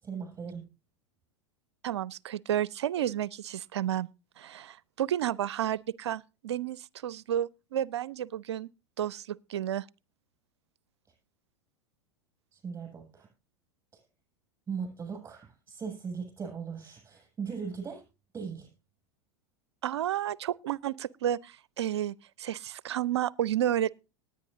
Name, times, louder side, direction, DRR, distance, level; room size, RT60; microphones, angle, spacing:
voice 1, 0.0-0.7 12.5-13.3 14.7-18.0 18.3-18.7, right 6 dB, 15° right, 7.6 m, -38 dB
voice 2, 1.8-4.1 4.4-8.7 9.0-9.9 19.8-24.0, right 11 dB, 65° right, 0.5 m, -31 dB
19.5 x 9.2 x 2.7 m
figure-of-eight pair, 85°, 15 cm